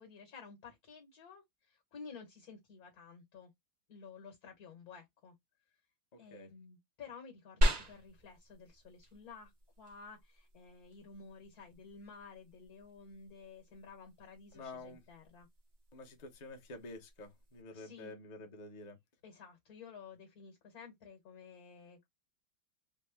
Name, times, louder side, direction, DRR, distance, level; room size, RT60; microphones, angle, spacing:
voice 1, 0.0-3.5 3.9-5.3 6.2-15.5 17.7-18.1 19.2-22.1, left 5 dB, 55° left, 1.4 m, -53 dB
voice 2, 6.1-6.5 14.5-15.0 15.9-19.0, left 2 dB, 85° left, 0.3 m, -49 dB
sound 1, 7.6-17.6, equal, 50° right, 0.6 m, -40 dB
3.5 x 2.1 x 3.4 m
omnidirectional pair, 2.2 m